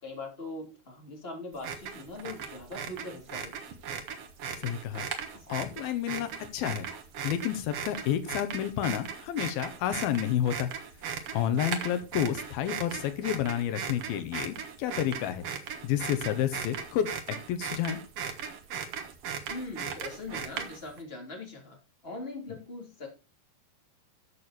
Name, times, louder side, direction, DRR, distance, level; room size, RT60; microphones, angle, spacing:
voice 1, 0.0-3.6 5.4-5.5 19.5-21.8 22.0-23.1, left 2 dB, 15° left, 1 dB, 3.2 m, -41 dB
sound 1, 1.5-21.0, right 7 dB, 55° right, 2.0 m, -38 dB
voice 2, 4.6-5.0 5.5-6.9 7.2-10.7 11.3-15.4 15.8-17.1 17.5-18.0, left 10 dB, 90° left, 10 dB, 3.0 m, -30 dB
13.0 x 6.9 x 4.4 m, 0.30 s
omnidirectional pair, 4.2 m